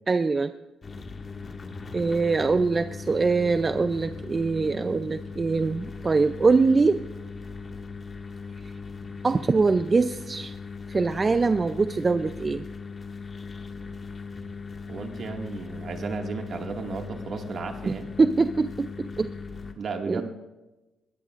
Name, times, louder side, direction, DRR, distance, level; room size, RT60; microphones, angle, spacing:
voice 1, 0.1-0.5 1.9-7.0 9.2-10.6 10.9-12.6 17.9-19.3 20.1-20.2, right 4 dB, 30° right, 10 dB, 0.5 m, -23 dB
sound 1, 0.8-19.7, left 4 dB, 40° left, 1.9 m, -39 dB
voice 2, 14.9-18.1 19.7-20.3, right 4 dB, 60° right, 3 dB, 2.0 m, -34 dB
21.0 x 16.0 x 2.5 m, 1.0 s
cardioid pair, 85°, 0 cm